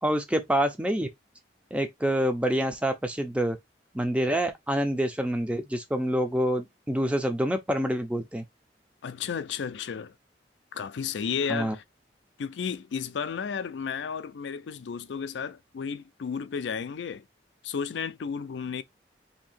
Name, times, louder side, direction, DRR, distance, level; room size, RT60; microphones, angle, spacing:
voice 1, 0.0-1.1 1.7-3.6 3.9-8.4 11.5-11.7, equal, 5° right, 0.5 m, -27 dB
voice 2, 9.0-10.1 10.7-11.8 12.4-17.3 17.6-18.8, left 6 dB, 75° left, 0.4 m, -33 dB
2.8 x 2.7 x 4.2 m
head